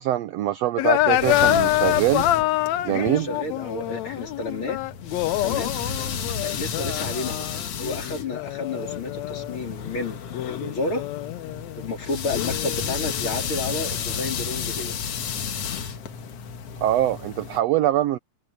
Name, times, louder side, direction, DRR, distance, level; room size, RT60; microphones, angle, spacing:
voice 1, 0.0-2.3 2.8-3.3 16.8-18.2, right 13 dB, 80° right, 1.4 m, -23 dB
sound 1, 0.8-9.6 10.3-11.8 12.3-15.2, left 14 dB, 70° left, 1.8 m, -27 dB
sound 2, 0.8-17.6, left 7 dB, 55° left, 2.3 m, -32 dB
voice 2, 2.9-4.8 5.4-5.7 6.4-7.5 7.8-11.0 11.8-15.0, left 2 dB, 40° left, 4.3 m, -31 dB
omnidirectional pair, 3.7 m